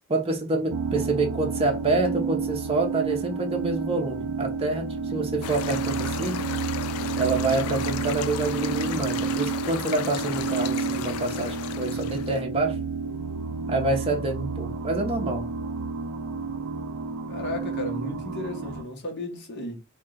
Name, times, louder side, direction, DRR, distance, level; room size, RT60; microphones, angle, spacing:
voice 1, 0.1-6.4 7.2-12.8 13.7-15.5, right 2 dB, 25° right, 0.8 m, -27 dB
sound 1, 0.7-18.8, right 4 dB, 65° right, 0.4 m, -30 dB
sound 2, 5.4-12.4, left 8 dB, 85° left, 0.4 m, -35 dB
voice 2, 17.2-19.8, left 1 dB, 50° left, 1.2 m, -34 dB
3.0 x 2.7 x 3.8 m
head